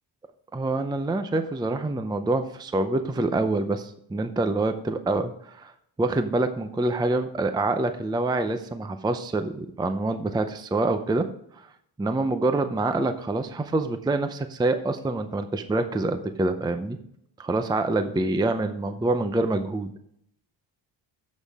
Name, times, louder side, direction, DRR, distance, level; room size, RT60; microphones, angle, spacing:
voice 1, 0.5-5.7 6.0-11.3 11.6-11.7 12.0-17.0 17.4-19.9, right 2 dB, 10° right, 9 dB, 0.5 m, -26 dB
10.5 x 7.4 x 3.5 m, 0.71 s
cardioid pair, 145°, 49 cm